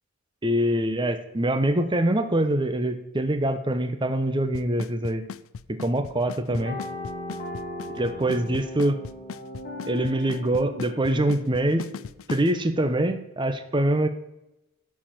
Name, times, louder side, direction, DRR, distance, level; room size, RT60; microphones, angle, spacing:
voice 1, 0.4-5.2 5.8-6.8 7.9-9.0 9.9-11.9 12.3-14.1, right 1 dB, 20° right, 8 dB, 0.7 m, -24 dB
Drum kit / Snare drum / Bass drum, 4.5-12.5, left 6 dB, 65° left, 0.4 m, -37 dB
sound 1, 6.5-12.1, left 2 dB, 45° left, 2.4 m, -38 dB
11.5 x 4.8 x 7.5 m, 0.91 s
head